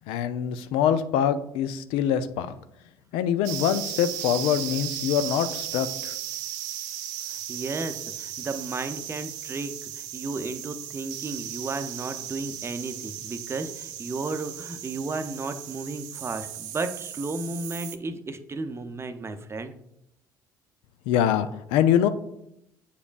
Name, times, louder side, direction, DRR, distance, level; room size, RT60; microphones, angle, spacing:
voice 1, 0.1-2.5 3.1-6.1 21.1-22.1, left 9 dB, 60° left, 12 dB, 0.4 m, -24 dB
sound 1, 3.4-18.0, right 11 dB, 70° right, 0.4 m, -36 dB
voice 2, 7.3-19.7, right 3 dB, 25° right, 9 dB, 0.7 m, -34 dB
8.3 x 5.0 x 2.5 m, 0.78 s
figure-of-eight pair, 55°, 10 cm